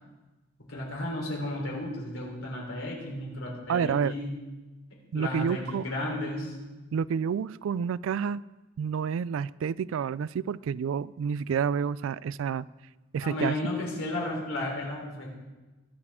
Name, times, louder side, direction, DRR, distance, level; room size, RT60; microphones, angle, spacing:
voice 1, 0.6-4.3 5.1-6.6 13.2-15.3, left 1 dB, 75° left, -2 dB, 3.5 m, -33 dB
voice 2, 3.7-4.1 5.1-5.9 6.9-8.4 8.8-12.7 13.1-13.5, right 7 dB, 75° right, 20 dB, 0.3 m, -29 dB
21.0 x 7.2 x 3.6 m, 1.2 s
head